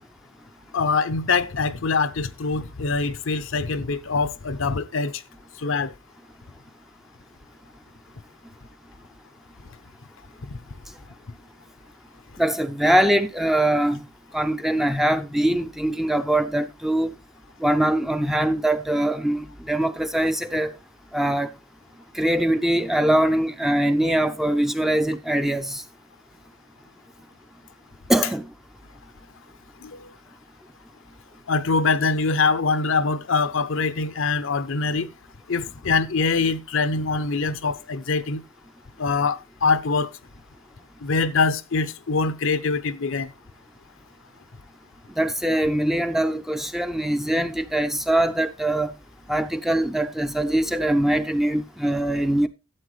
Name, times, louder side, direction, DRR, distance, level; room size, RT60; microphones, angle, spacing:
voice 1, 0.7-5.1 5.6-5.9 29.8-29.9 31.5-35.1 35.5-38.4 39.0-40.1 41.0-43.3, left 4 dB, 65° left, 0.7 m, -23 dB
voice 2, 12.4-14.0 14.3-17.1 17.6-20.7 21.1-21.5 22.1-25.8 28.1-28.4 45.2-48.9 49.3-52.5, right 1 dB, ahead, 0.5 m, -22 dB
12.0 x 8.3 x 3.1 m
head